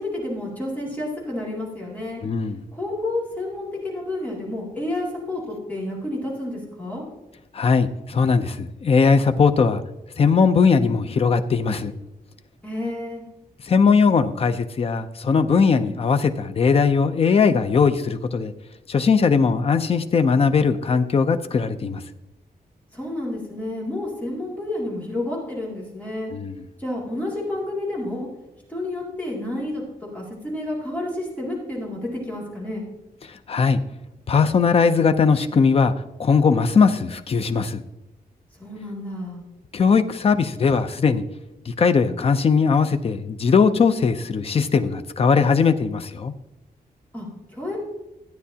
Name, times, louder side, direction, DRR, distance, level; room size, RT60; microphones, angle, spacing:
voice 1, 0.0-2.2 2.7-7.0 12.6-13.2 22.9-26.3 26.8-28.3 28.7-32.9 38.6-39.4 47.1-47.8, left 1 dB, 10° left, -5 dB, 2.5 m, -30 dB
voice 2, 2.2-2.6 7.5-9.8 10.2-11.9 13.6-18.5 18.9-22.0 26.3-26.6 33.3-33.8 34.3-35.9 36.2-37.8 39.7-41.2 41.7-46.3, left 5 dB, 40° left, 9 dB, 0.5 m, -19 dB
13.5 x 9.2 x 2.8 m, 0.98 s
wide cardioid pair, 180°, 16 cm